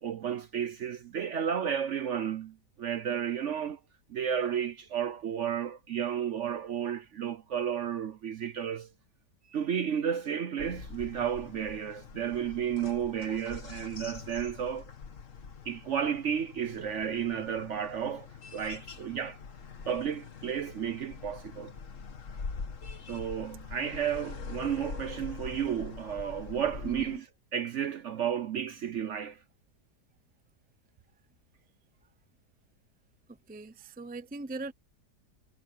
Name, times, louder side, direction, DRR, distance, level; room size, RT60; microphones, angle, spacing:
voice 1, 0.0-3.8 4.1-8.9 9.5-14.9 15.6-19.4 19.9-21.7 23.1-27.3 27.5-29.4, right 8 dB, 60° right, 0.8 m, -32 dB
sound 1, 10.6-27.2, left 5 dB, 50° left, 1.8 m, -44 dB
voice 2, 26.8-27.2 33.5-34.7, right 2 dB, 10° right, 0.4 m, -39 dB
omnidirectional pair, 1.8 m